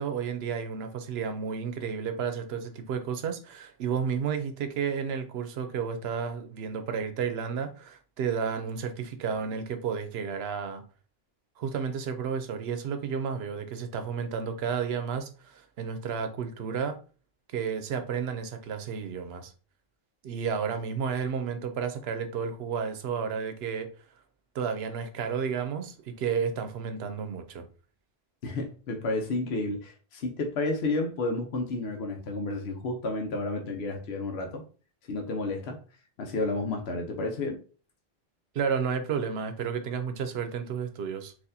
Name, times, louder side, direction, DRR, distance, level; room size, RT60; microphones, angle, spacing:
voice 1, 0.0-10.8 11.6-17.0 17.5-19.5 20.2-23.9 24.5-27.7 38.5-41.3, right 6 dB, 85° right, 0.9 m, -32 dB
voice 2, 28.4-34.6 35.1-35.8 36.2-37.6, left 2 dB, 90° left, 0.9 m, -31 dB
4.1 x 2.6 x 2.6 m
omnidirectional pair, 1.0 m